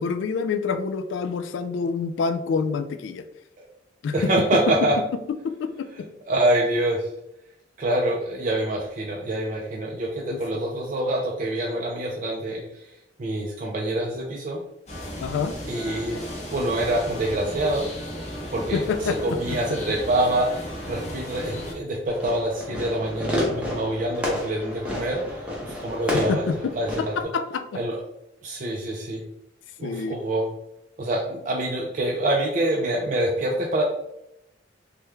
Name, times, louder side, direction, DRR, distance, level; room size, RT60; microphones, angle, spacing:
voice 1, 0.0-3.2 4.0-4.9 5.4-6.1 10.3-10.4 15.2-15.6 18.7-19.8 26.3-27.6 29.8-30.2, left 5 dB, 80° left, 10 dB, 0.3 m, -27 dB
voice 2, 4.1-5.0 6.3-7.1 7.8-12.9 13.2-14.6 15.7-16.2 16.5-17.9 18.5-26.5 26.8-27.3 27.7-28.0 28.4-29.2 29.8-30.5 31.0-33.8, right 1 dB, 45° right, -2 dB, 0.4 m, -26 dB
sound 1, 14.9-21.7, equal, 35° left, 0.7 m, -35 dB
Fireworks, 22.1-27.2, left 1 dB, 5° right, 0.6 m, -30 dB
3.4 x 2.1 x 3.0 m, 0.82 s
head